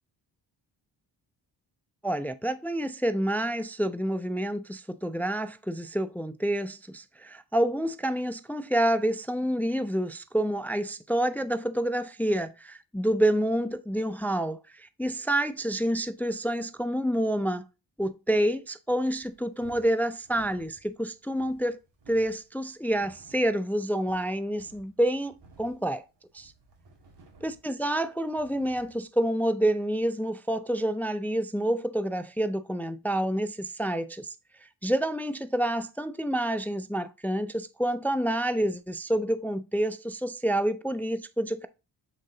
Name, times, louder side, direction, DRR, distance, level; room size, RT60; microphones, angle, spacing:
voice 1, 2.0-17.6 18.0-21.8 22.1-26.0 26.3-26.5 27.4-34.3 34.8-41.7, right 1 dB, 5° left, 0.4 m, -28 dB
sound 1, 19.1-29.0, right 3 dB, 65° right, 2.3 m, -56 dB
7.5 x 3.7 x 3.9 m
cardioid pair, 75°, 45 cm